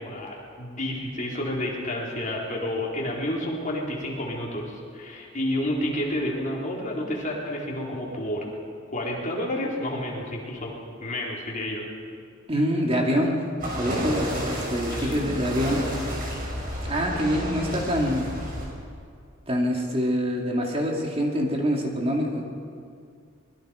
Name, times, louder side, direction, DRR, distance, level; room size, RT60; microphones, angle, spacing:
voice 1, 0.0-8.5 8.9-10.7 11.0-11.9 14.9-15.3, left 1 dB, 40° left, -2 dB, 4.1 m, -30 dB
voice 2, 12.5-15.8 16.9-18.3 19.5-22.4, equal, 30° right, 0 dB, 2.8 m, -25 dB
sound 1, 13.6-18.6, equal, 45° right, 6.5 m, -31 dB
24.5 x 21.5 x 5.2 m, 2.3 s
head